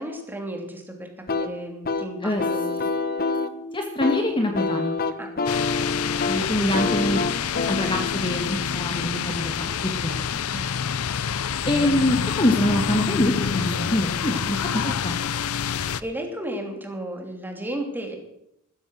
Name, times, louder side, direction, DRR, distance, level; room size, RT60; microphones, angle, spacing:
voice 1, 0.0-2.8 5.2-5.4 5.9-6.9 10.5-10.7 14.8-15.0 16.0-18.2, right 1 dB, 10° right, 3 dB, 2.9 m, -34 dB
sound 1, 1.3-9.9, left 3 dB, 45° left, 1.1 m, -28 dB
voice 2, 3.7-4.9 6.5-7.2 7.7-9.6 10.0-10.2 11.6-14.6 15.0-15.1, left 1 dB, 25° left, 3 dB, 1.5 m, -24 dB
sound 2, 5.5-16.0, left 7 dB, 75° left, 0.6 m, -27 dB
14.5 x 14.0 x 6.3 m, 0.77 s
head